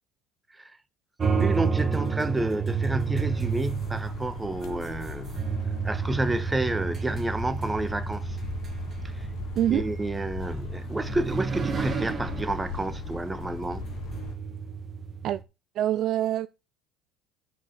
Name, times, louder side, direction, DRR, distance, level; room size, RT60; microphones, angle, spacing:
sound 1, 1.2-15.4, right 5 dB, 35° right, 1.8 m, -31 dB
voice 1, 1.4-5.4 5.8-8.4 9.1-9.3 9.7-13.8, right 2 dB, 15° right, 1.2 m, -30 dB
sound 2, 3.0-14.3, left 5 dB, 60° left, 2.0 m, -39 dB
voice 2, 15.7-16.5, right 12 dB, 55° right, 0.4 m, -25 dB
10.0 x 5.3 x 6.5 m
hypercardioid pair, 75°, 0 cm